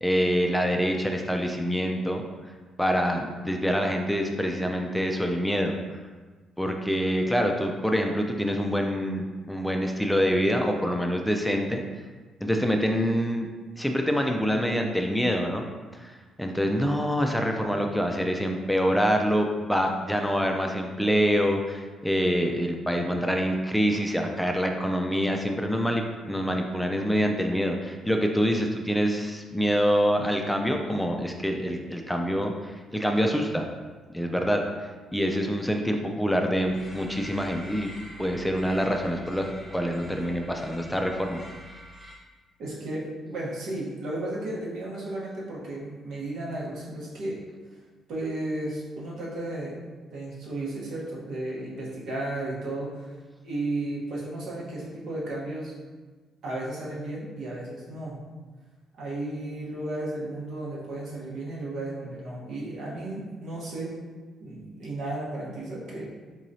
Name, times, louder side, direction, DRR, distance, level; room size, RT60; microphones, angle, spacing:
voice 1, 0.0-2.2 2.8-5.7 6.6-11.8 12.4-13.5 13.8-33.7 34.1-37.9 38.2-41.4, equal, 5° left, 3 dB, 0.3 m, -26 dB
sound 1, 36.6-42.1, equal, 20° right, 1.0 m, -46 dB
voice 2, 42.6-47.4 48.1-49.8 50.1-53.1 53.4-55.7 56.4-58.2 58.9-63.9 64.4-66.1, right 2 dB, 75° right, -5 dB, 1.0 m, -34 dB
3.8 x 3.0 x 2.7 m, 1.4 s
cardioid pair, 90°, 0 cm